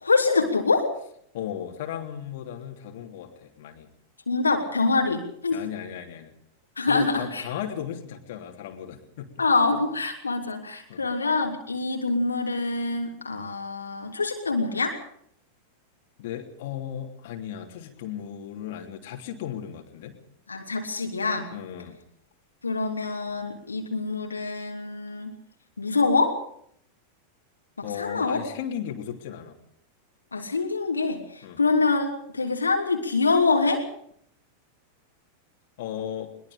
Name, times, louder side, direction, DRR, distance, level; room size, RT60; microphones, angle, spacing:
voice 1, 0.0-0.9 4.3-5.6 6.8-7.4 9.4-15.0 20.5-21.5 22.6-25.3 25.8-26.4 27.8-28.4 30.3-32.1 32.3-33.8, left 3 dB, 75° left, 2 dB, 3.0 m, -25 dB
voice 2, 1.3-3.9 5.5-6.3 6.9-9.3 10.9-11.0 16.2-20.2 21.5-22.0 27.8-29.5 31.4-31.6 35.8-36.3, left 9 dB, 50° left, 3 dB, 3.2 m, -35 dB
22.5 x 22.0 x 5.2 m, 0.68 s
figure-of-eight pair, 90°, 0 cm